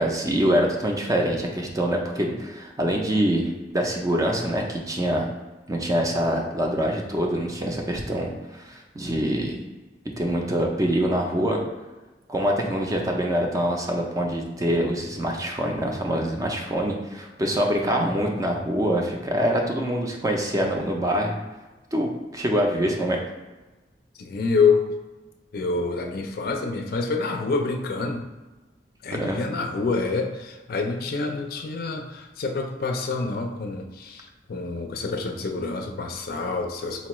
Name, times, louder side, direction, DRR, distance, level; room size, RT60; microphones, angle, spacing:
voice 1, 0.0-5.3 5.7-9.6 10.2-11.6 12.3-21.4 21.9-23.2 29.1-29.4, equal, 20° right, 1 dB, 0.4 m, -25 dB
voice 2, 24.2-24.9 25.5-28.3 29.0-37.1, left 4 dB, 55° left, 4 dB, 0.4 m, -27 dB
4.1 x 2.3 x 3.0 m, 1.2 s
head